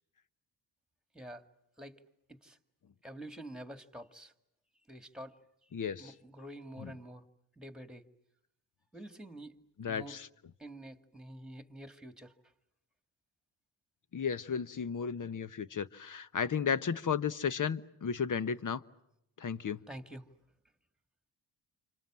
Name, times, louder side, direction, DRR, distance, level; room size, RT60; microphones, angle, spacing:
voice 1, 1.1-1.5 1.8-2.0 2.3-2.6 3.0-4.3 4.9-5.7 6.0-7.2 7.6-8.0 8.9-9.6 9.9-10.2 10.6-12.3 19.9-20.3, right 1 dB, ahead, 9 dB, 2.2 m, -48 dB
voice 2, 5.7-6.1 6.8-6.9 9.8-10.3 14.1-18.8 19.4-19.8, left 7 dB, 45° left, 14 dB, 1.1 m, -34 dB
29.5 x 25.5 x 7.6 m, 0.81 s
cardioid pair, 65°, 43 cm